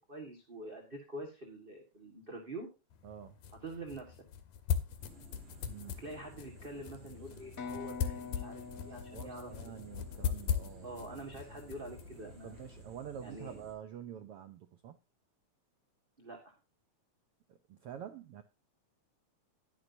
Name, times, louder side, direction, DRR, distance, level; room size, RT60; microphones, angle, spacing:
voice 1, 0.1-2.7 3.6-4.1 5.9-9.8 10.8-12.5 13.2-13.6 16.2-16.6, right 2 dB, 25° right, 2 dB, 1.4 m, -46 dB
sound 1, 2.9-12.8, left 8 dB, 90° left, 2.6 m, -40 dB
voice 2, 3.0-3.4 5.6-6.0 9.1-10.9 12.4-15.0 17.5-18.4, right 9 dB, 70° right, 9 dB, 1.4 m, -47 dB
sound 2, 5.0-13.7, right 2 dB, 50° right, 4.2 m, -55 dB
sound 3, 7.6-11.3, left 5 dB, 65° left, 0.8 m, -47 dB
11.5 x 11.0 x 2.7 m, 0.29 s
omnidirectional pair, 3.4 m